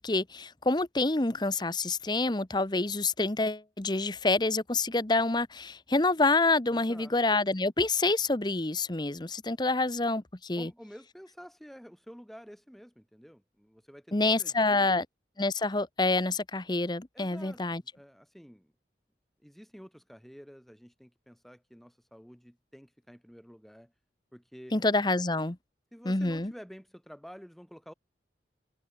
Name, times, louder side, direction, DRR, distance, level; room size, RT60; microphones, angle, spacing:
voice 1, 0.0-10.7 14.1-15.0 15.4-17.8 24.7-25.6 26.0-26.5, left 3 dB, 25° left, 1.0 m, -27 dB
voice 2, 6.7-7.1 10.6-14.9 17.1-18.7 19.4-23.9 24.3-24.8 25.9-27.9, equal, ahead, 2.9 m, -50 dB
head